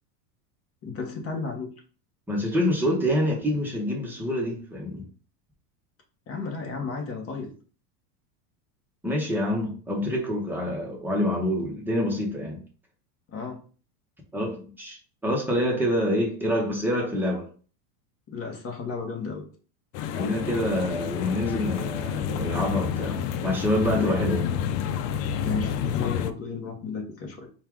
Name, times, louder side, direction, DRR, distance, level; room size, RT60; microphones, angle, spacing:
voice 1, 0.8-1.8 6.3-7.5 13.3-13.6 18.3-19.4 23.9-24.2 25.4-27.5, left 4 dB, 30° left, 2 dB, 1.0 m, -33 dB
voice 2, 2.3-5.0 9.0-12.6 14.3-17.5 20.2-24.4, equal, 5° right, -2 dB, 0.8 m, -26 dB
sound 1, 19.9-26.3, left 8 dB, 90° left, 0.6 m, -29 dB
4.4 x 2.4 x 3.6 m, 0.39 s
supercardioid pair, 145°, 47 cm